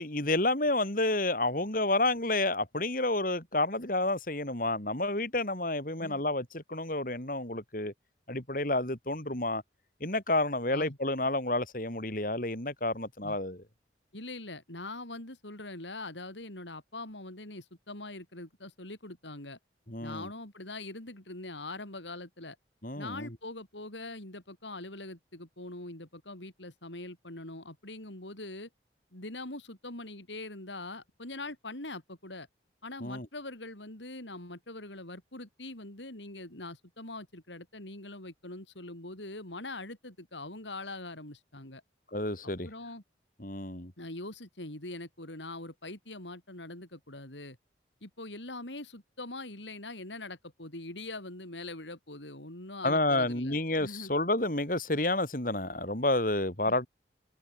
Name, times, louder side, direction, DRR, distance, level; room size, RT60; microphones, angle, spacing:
voice 1, 0.0-7.9 8.3-9.6 10.0-13.6 19.9-20.3 22.8-23.4 33.0-33.3 42.1-42.7 43.4-43.9 52.8-56.9, left 2 dB, 50° left, 4.5 m, -30 dB
voice 2, 14.1-19.6 20.0-22.6 23.0-28.7 29.1-32.5 32.8-41.8 42.7-43.0 44.0-47.6 48.0-54.1 56.7-56.8, left 2 dB, 90° left, 7.0 m, -43 dB
head